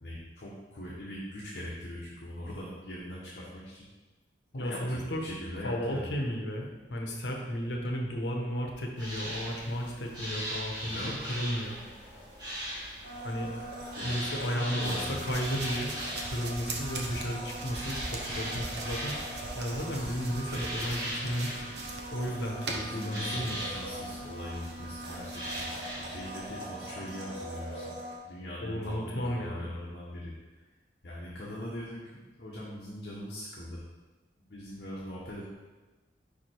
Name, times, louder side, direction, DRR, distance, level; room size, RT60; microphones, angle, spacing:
voice 1, 0.0-3.9 4.5-6.1 10.8-11.2 13.9-15.1 22.8-27.9 28.2-30.3 31.0-33.8 34.5-35.5, left 1 dB, 60° left, -6 dB, 1.1 m, -41 dB
voice 2, 4.5-5.2 5.6-11.8 13.2-13.5 14.0-16.0 16.2-19.2 19.5-21.7 22.1-23.6 28.6-29.7, equal, 80° left, 1 dB, 1.0 m, -34 dB
sound 1, 9.0-26.5, equal, 25° right, 1.6 m, -40 dB
Domestic sounds home sounds, 13.0-28.2, right 1 dB, 90° right, 1.5 m, -42 dB
sound 2, 14.8-24.2 24.5-25.9, right 2 dB, 70° right, 0.8 m, -41 dB
5.3 x 5.0 x 4.5 m, 1.2 s
head